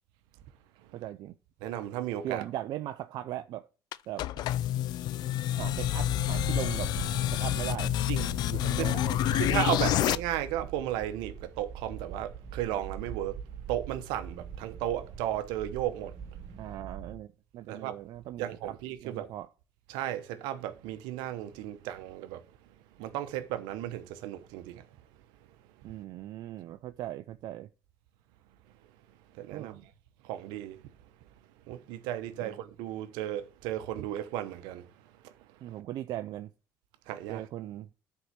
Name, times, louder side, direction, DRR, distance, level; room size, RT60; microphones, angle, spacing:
voice 1, 0.9-1.3 2.2-3.7 4.1-4.4 5.6-6.9 7.3-7.9 8.5-10.0 16.6-17.3 17.5-19.5 25.8-27.7 29.5-29.8 32.4-32.6 35.6-36.5 37.3-37.9, right 13 dB, 70° right, 0.5 m, -39 dB
voice 2, 1.6-2.4 8.1-8.3 8.8-9.0 9.3-13.4 13.7-16.1 17.7-17.9 18.4-19.3 19.9-22.4 23.0-24.8 29.4-29.8 30.3-30.8 31.7-34.8 37.1-37.4, right 12 dB, 85° right, 1.0 m, -34 dB
sound 1, 3.9-10.2, left 13 dB, 70° left, 0.4 m, -28 dB
sound 2, 5.6-17.2, right 7 dB, 40° right, 2.1 m, -42 dB
9.9 x 4.7 x 6.8 m
supercardioid pair, 80°, 7 cm